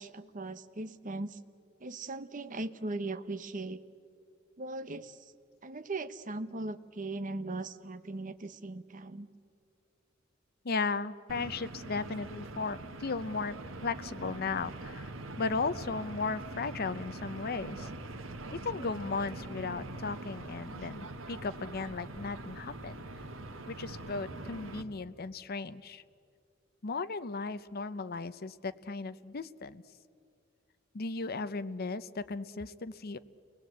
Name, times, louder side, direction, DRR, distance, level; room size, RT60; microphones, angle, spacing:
voice 1, 0.0-1.4 1.8-3.8 4.6-5.2 5.6-9.3, right 2 dB, 40° right, 11 dB, 1.0 m, -39 dB
voice 2, 10.6-15.1 15.4-17.9 18.5-23.0 23.7-26.0 26.8-29.8 30.9-33.2, left 4 dB, 50° left, 13 dB, 0.7 m, -36 dB
sound 1, 11.3-24.8, right 2 dB, 85° right, 1.5 m, -43 dB
29.0 x 20.5 x 8.1 m, 2.4 s
head